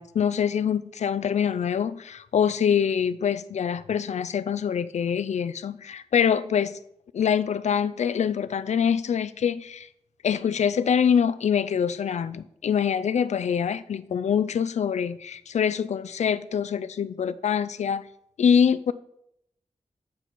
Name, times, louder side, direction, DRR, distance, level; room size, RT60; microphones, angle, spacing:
voice 1, 0.0-6.8 7.1-9.9 10.2-18.1 18.4-18.9, left 7 dB, 75° left, 0.4 m, -24 dB
7.9 x 4.5 x 4.1 m
wide cardioid pair, 105°, 12 cm